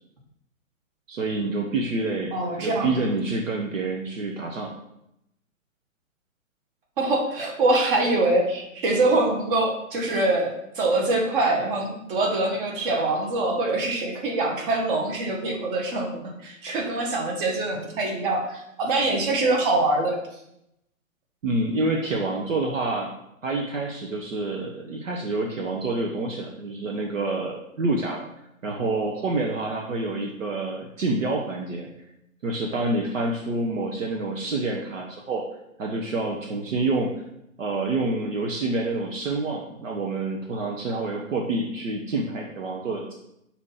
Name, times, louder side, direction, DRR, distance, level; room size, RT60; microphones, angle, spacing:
voice 1, 1.1-4.7 21.4-23.1 23.4-28.2 28.6-31.9 32.4-35.4 35.8-37.1 37.6-43.1, right 2 dB, 65° right, 0 dB, 1.0 m, -27 dB
voice 2, 2.3-2.9 7.0-20.2, right 2 dB, 40° right, 0 dB, 1.6 m, -24 dB
6.0 x 2.9 x 5.6 m, 0.80 s
figure-of-eight pair, 135°, 41 cm